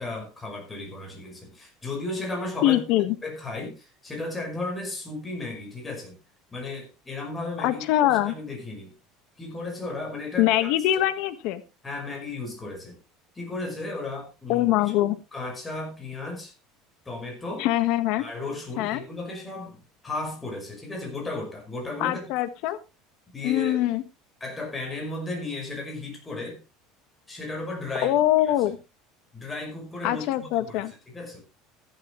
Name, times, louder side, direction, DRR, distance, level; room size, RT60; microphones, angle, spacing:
voice 1, 0.0-2.8 3.2-6.2 6.5-8.9 9.4-10.7 11.8-13.0 13.3-14.9 15.3-16.5 17.1-17.7 18.2-22.3 23.3-23.8 24.4-26.6 27.3-28.1 28.4-28.5 29.3-31.4, left 2 dB, 15° left, 5.5 m, -35 dB
voice 2, 2.6-3.1 7.6-8.3 10.4-11.6 14.5-15.2 17.6-18.2 18.8-19.0 22.0-22.8 23.4-24.0 28.0-28.8 30.0-30.9, left 14 dB, 60° left, 1.6 m, -23 dB
14.0 x 12.0 x 3.2 m
cardioid pair, 150°, 0 cm